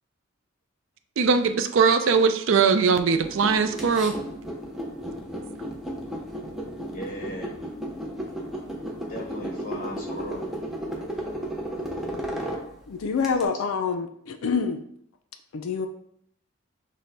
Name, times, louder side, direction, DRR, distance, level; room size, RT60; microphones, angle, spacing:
voice 1, 1.2-4.2, right 5 dB, 65° right, 9 dB, 0.4 m, -21 dB
sound 1, 3.1-13.4, equal, ahead, 0.6 m, -34 dB
voice 2, 6.9-7.5 9.1-10.5, equal, 40° left, -1 dB, 1.1 m, -37 dB
voice 3, 12.9-14.8 15.5-15.9, left 5 dB, 75° left, 7 dB, 0.4 m, -26 dB
6.2 x 2.1 x 3.9 m, 0.69 s
head